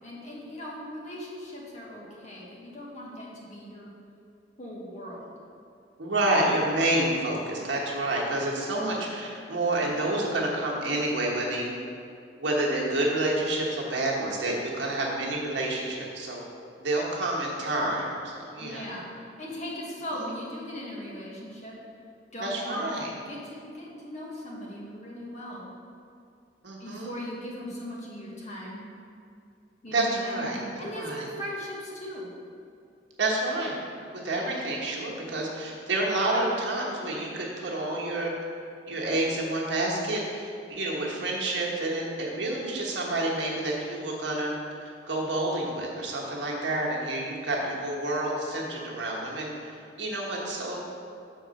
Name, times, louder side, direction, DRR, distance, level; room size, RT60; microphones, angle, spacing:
voice 1, 0.0-3.9 4.6-5.3 18.6-21.7 22.3-25.7 26.8-28.8 29.8-32.3, equal, 40° left, -4 dB, 1.4 m, -38 dB
voice 2, 6.0-11.7 12.4-16.4 16.8-18.9 20.2-20.3 22.4-23.1 26.6-27.1 29.9-31.2 33.2-33.7 34.2-38.3 38.9-44.5 44.8-50.8, right 1 dB, 80° right, -3 dB, 1.3 m, -29 dB
6.5 x 3.8 x 6.3 m, 2.5 s
head